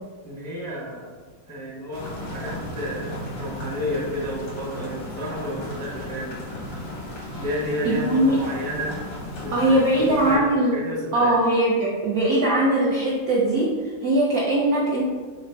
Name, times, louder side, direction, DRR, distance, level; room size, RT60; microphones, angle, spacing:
voice 1, 0.2-1.1 1.5-6.4 7.4-8.9 9.4-9.8 10.1-11.3, equal, 5° left, -7 dB, 0.4 m, -31 dB
sound 1, 1.9-10.4, left 1 dB, 55° left, 0.6 m, -35 dB
voice 2, 7.8-8.4 9.5-10.7 11.1-15.0, right 1 dB, 70° right, -4 dB, 0.8 m, -21 dB
4.9 x 2.2 x 4.5 m, 1.4 s
omnidirectional pair, 2.3 m